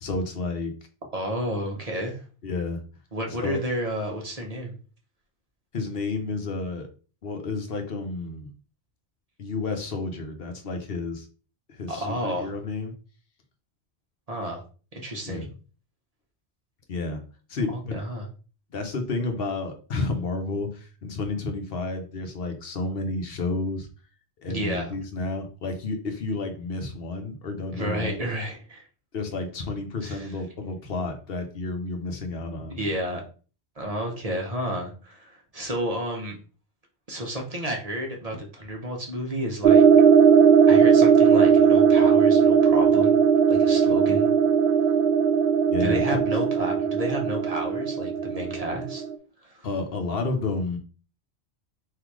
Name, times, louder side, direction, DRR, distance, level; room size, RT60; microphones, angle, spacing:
voice 1, 0.0-0.7 2.4-2.8 3.3-3.6 5.7-6.9 7.2-8.5 9.4-11.3 11.7-13.0 15.2-15.5 16.9-17.2 17.5-18.0 18.7-23.9 24.4-28.2 29.1-32.9 45.7-46.2 49.6-50.8, left 3 dB, 60° left, 5 dB, 1.2 m, -31 dB
voice 2, 1.1-2.2 3.1-4.7 11.9-12.5 14.3-14.6 14.9-15.5 17.7-18.3 24.5-24.9 27.7-28.8 30.0-30.3 32.7-33.2 33.8-36.4 37.1-39.8 40.7-43.2 43.5-44.3 45.8-49.0 49.4-49.7, equal, 35° right, 1 dB, 0.9 m, -31 dB
sound 1, 39.6-49.1, right 6 dB, 65° right, 0.8 m, -18 dB
3.9 x 2.7 x 4.6 m, 0.37 s
omnidirectional pair, 1.1 m